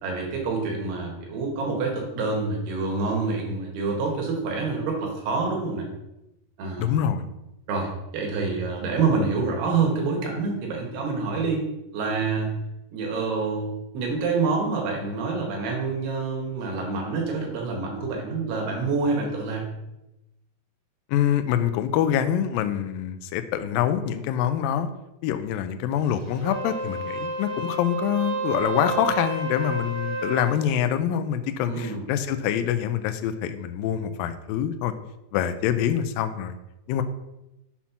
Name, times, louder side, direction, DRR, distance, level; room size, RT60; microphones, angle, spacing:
voice 1, 0.0-5.9 6.6-7.0 7.7-11.6 11.9-12.5 12.9-13.7 13.9-19.7 31.6-32.1, right 4 dB, 80° right, 0 dB, 3.6 m, -27 dB
voice 2, 6.8-7.2 21.1-24.9 25.2-34.9 35.3-36.6 36.9-37.0, left 10 dB, 85° left, 9 dB, 2.1 m, -25 dB
Wind instrument woodwind instrument, 26.3-30.6, right 3 dB, 55° right, 1.7 m, -30 dB
7.3 x 4.3 x 5.6 m, 0.92 s
omnidirectional pair, 4.6 m